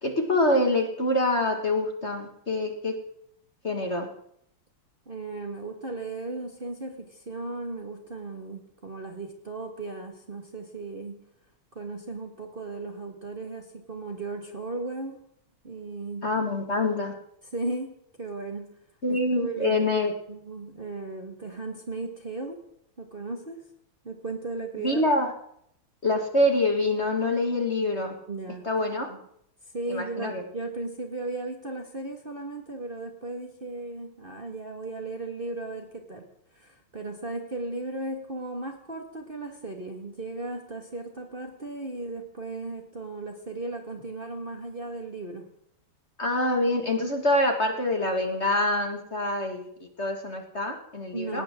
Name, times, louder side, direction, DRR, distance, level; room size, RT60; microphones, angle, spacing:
voice 1, 0.0-3.0 3.6-4.1 16.2-17.1 19.0-20.1 24.8-25.3 26.0-28.1 28.6-29.1 29.9-30.4 46.2-51.4, left 1 dB, 30° left, 3 dB, 2.1 m, -25 dB
voice 2, 5.1-11.2 11.7-15.2 15.6-16.3 17.5-18.7 19.1-19.8 20.3-22.6 23.0-23.6 24.0-25.0 28.3-28.7 29.1-29.2 29.7-36.3 36.5-45.5 51.1-51.4, right 3 dB, 25° right, 2 dB, 1.8 m, -36 dB
19.0 x 19.0 x 3.7 m, 0.70 s
omnidirectional pair, 2.4 m